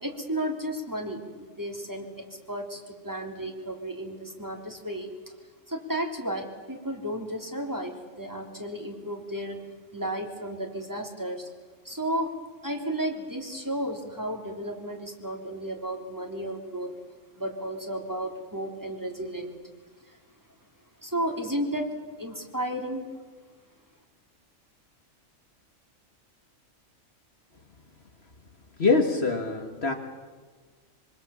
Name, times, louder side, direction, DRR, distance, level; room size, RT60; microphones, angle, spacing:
voice 1, 0.0-5.3 5.7-9.6 9.9-11.5 11.8-12.3 12.6-16.9 17.4-19.6 20.0-20.2 21.0-21.9 22.2-23.2, right 1 dB, 15° right, 1 dB, 3.4 m, -33 dB
voice 2, 28.8-29.9, left 4 dB, 55° left, 4 dB, 2.1 m, -24 dB
26.0 x 24.5 x 7.2 m, 1.4 s
omnidirectional pair, 1.3 m